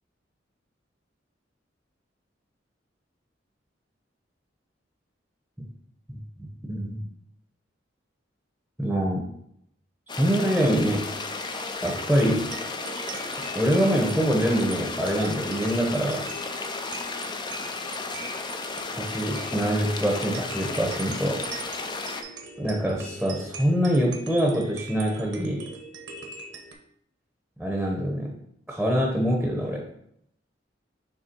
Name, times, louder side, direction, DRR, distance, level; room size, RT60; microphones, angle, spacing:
voice 1, 6.1-7.1 8.8-9.2 10.2-11.1 11.8-12.5 13.5-16.3 18.9-21.4 22.6-25.7 27.6-28.3 28.7-29.8, equal, ahead, 0 dB, 0.9 m, -25 dB
sound 1, 10.1-22.2, left 3 dB, 25° left, 0.5 m, -34 dB
sound 2, 11.0-26.7, right 3 dB, 75° right, 1.0 m, -42 dB
6.5 x 3.4 x 4.5 m, 0.73 s
head